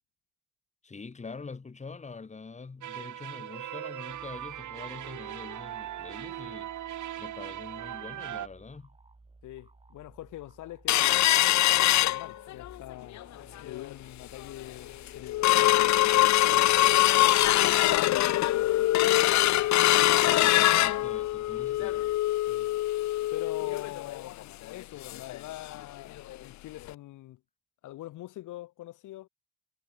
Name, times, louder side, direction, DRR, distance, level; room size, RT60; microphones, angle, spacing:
voice 1, 0.8-8.9 20.2-22.1, left 4 dB, 25° left, 1.6 m, -44 dB
sound 1, 2.8-8.5, right 12 dB, 75° right, 3.2 m, -39 dB
sound 2, 4.1-22.2, right 3 dB, 20° right, 4.4 m, -57 dB
voice 2, 9.4-13.2 13.6-16.0 16.5-18.3 18.6-19.0 19.9-20.5 22.5-22.7 23.3-24.4 24.7-27.4 27.8-29.3, left 15 dB, 85° left, 1.5 m, -44 dB
sound 3, 10.9-12.7 13.2-13.3 13.6-13.9 14.4-14.5 14.9-25.4 25.7-25.8 26.2-26.4 26.9-27.0, left 15 dB, 65° left, 0.6 m, -23 dB
cardioid pair, 90°, 30 cm